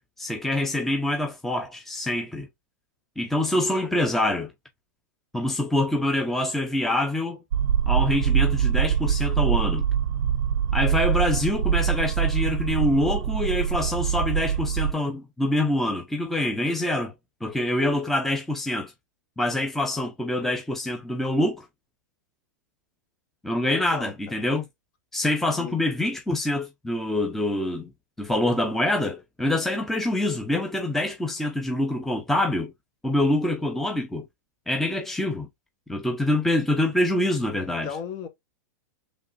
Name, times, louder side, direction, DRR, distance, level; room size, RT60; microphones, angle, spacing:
voice 1, 0.2-2.5 3.2-4.5 5.3-7.4 7.9-9.8 10.7-17.1 17.4-18.9 19.4-21.6 23.4-24.6 25.1-27.9 28.2-32.7 33.0-34.2 34.7-35.5 35.9-37.9, left 1 dB, 5° left, 0.7 m, -25 dB
sound 1, 7.5-14.9, right 8 dB, 80° right, 0.5 m, -24 dB
voice 2, 23.6-24.4 25.6-25.8 37.6-38.3, left 7 dB, 40° left, 1.2 m, -37 dB
5.1 x 3.2 x 2.6 m
hypercardioid pair, 130°, 10 cm